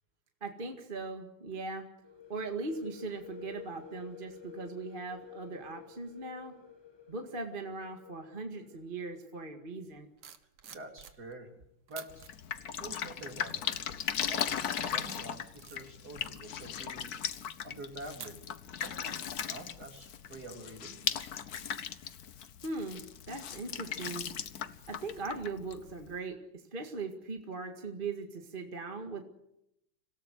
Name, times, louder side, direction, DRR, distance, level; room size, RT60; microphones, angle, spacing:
voice 1, 0.4-1.9 2.3-6.5 7.1-10.1 22.6-24.3 24.9-29.2, right 3 dB, 25° right, 4 dB, 1.9 m, -39 dB
sound 1, 2.0-9.6, left 8 dB, 15° left, 1.4 m, -51 dB
sound 2, 10.0-11.5 11.9-12.3 12.9-13.3 13.8-14.1 14.6-18.9 19.2-19.4, right 8 dB, 80° right, 2.4 m, -52 dB
voice 2, 10.6-11.5 11.9-12.3 12.8-13.8 14.2-17.1 17.6-18.4 18.8-19.2 19.4-21.1, right 2 dB, 45° right, 4 dB, 3.7 m, -47 dB
Drip, 12.1-26.2, left 8 dB, 55° left, 1.3 m, -38 dB
26.5 x 17.5 x 8.1 m, 0.81 s
omnidirectional pair, 2.4 m